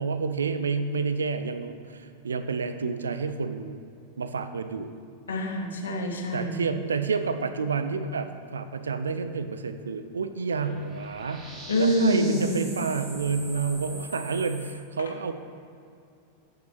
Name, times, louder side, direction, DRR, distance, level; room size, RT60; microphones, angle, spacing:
voice 1, 0.0-3.8 4.2-4.9 6.3-11.5 11.8-15.3, right 5 dB, 70° right, 9 dB, 0.4 m, -29 dB
voice 2, 5.3-6.6 11.7-12.6, left 1 dB, 65° left, 3 dB, 0.9 m, -25 dB
sound 1, 10.4-14.7, right 1 dB, 20° right, 1.3 m, -43 dB
8.0 x 6.7 x 3.2 m, 2.4 s
figure-of-eight pair, 90°, 0 cm